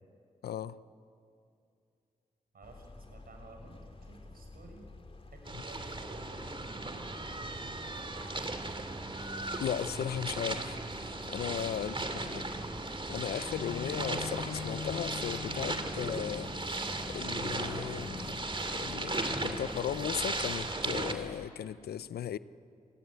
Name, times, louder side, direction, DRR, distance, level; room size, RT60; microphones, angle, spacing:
voice 1, 0.4-0.8 9.6-12.5 13.1-16.5 17.1-18.4 18.7-22.4, left 10 dB, 85° left, 0.6 m, -37 dB
voice 2, 2.5-4.8 5.3-9.1 11.8-12.9, right 2 dB, 70° right, 6.3 m, -54 dB
sound 1, 2.6-21.5, left 2 dB, 35° left, 2.1 m, -51 dB
sound 2, 5.5-21.1, right 2 dB, 30° right, 2.6 m, -37 dB
Bowed string instrument, 13.4-19.1 19.7-19.8, left 6 dB, 60° left, 1.0 m, -44 dB
27.0 x 17.0 x 9.9 m
supercardioid pair, 40°, 16 cm